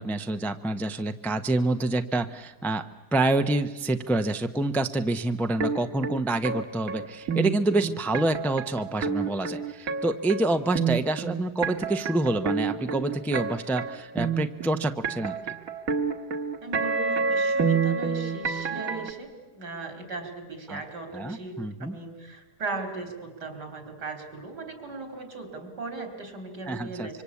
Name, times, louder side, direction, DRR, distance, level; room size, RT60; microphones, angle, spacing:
voice 1, 0.0-2.8 3.1-15.4 20.7-20.8 21.1-22.0 26.7-27.1, right 2 dB, ahead, 8 dB, 0.5 m, -27 dB
sound 1, 5.6-19.1, right 5 dB, 60° right, 1.8 m, -28 dB
voice 2, 16.6-27.2, right 3 dB, 85° right, 7 dB, 3.9 m, -38 dB
26.0 x 25.0 x 8.4 m, 1.1 s
omnidirectional pair, 1.7 m